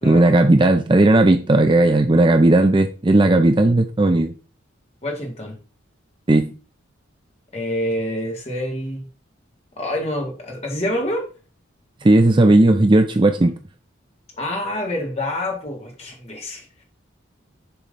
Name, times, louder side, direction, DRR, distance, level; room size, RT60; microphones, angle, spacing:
voice 1, 0.0-4.3 6.3-6.5 12.0-13.5, right 2 dB, 25° right, 7 dB, 0.5 m, -15 dB
voice 2, 5.0-5.6 7.5-9.1 9.8-11.3 14.4-16.8, left 1 dB, 30° left, 1 dB, 1.8 m, -27 dB
7.0 x 3.1 x 5.2 m, 0.36 s
head